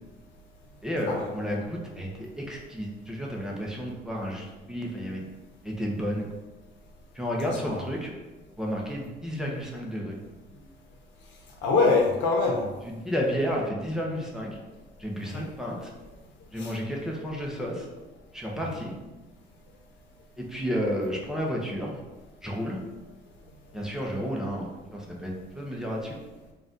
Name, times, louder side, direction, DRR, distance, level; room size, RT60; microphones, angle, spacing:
voice 1, 0.8-5.2 5.6-6.3 7.1-8.1 8.6-10.2 13.0-14.6 15.0-15.9 16.5-17.9 18.3-18.9 20.4-22.0 22.4-22.8 23.7-26.2, equal, 5° right, -2 dB, 0.7 m, -31 dB
voice 2, 7.5-7.9 11.6-12.7 15.2-15.5 16.6-16.7 17.6-17.8 18.7-18.8, left 3 dB, 75° left, 1 dB, 0.8 m, -25 dB
3.9 x 2.4 x 3.8 m, 1.2 s
cardioid pair, 120°, 19 cm